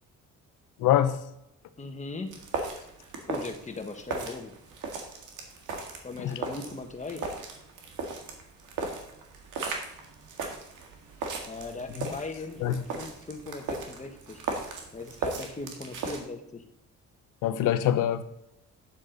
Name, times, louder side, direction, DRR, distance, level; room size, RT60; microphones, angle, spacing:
voice 1, 0.8-1.2 6.2-6.3 12.6-12.8 17.4-18.2, left 11 dB, 85° left, 0.8 m, -24 dB
voice 2, 1.8-2.3 3.3-4.5 6.0-7.3 11.4-14.4 14.9-16.6, left 3 dB, 25° left, 1.5 m, -39 dB
sound 1, 2.3-16.2, right 4 dB, 85° right, 1.9 m, -37 dB
10.0 x 7.4 x 3.9 m
cardioid pair, 90°, 30 cm